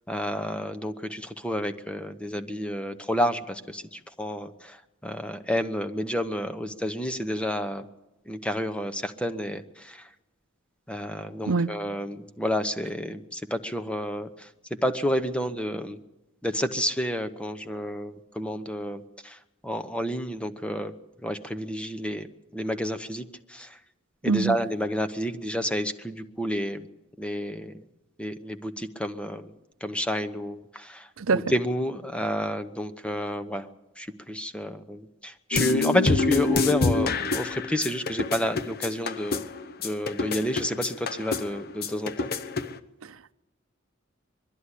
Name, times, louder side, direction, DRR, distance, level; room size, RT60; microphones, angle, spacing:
voice 1, 0.1-7.9 8.3-10.1 10.9-16.0 16.4-19.4 19.6-20.9 21.2-22.3 22.5-23.8 24.2-26.9 27.2-27.8 28.2-29.5 29.8-31.1 31.3-33.7 34.0-39.5 39.8-42.3, equal, 5° left, 0.9 m, -30 dB
voice 2, 24.2-24.6 31.2-31.5 43.0-43.3, right 4 dB, 80° right, 0.6 m, -25 dB
sound 1, 35.5-42.8, left 3 dB, 50° left, 0.9 m, -27 dB
22.0 x 13.0 x 9.9 m
head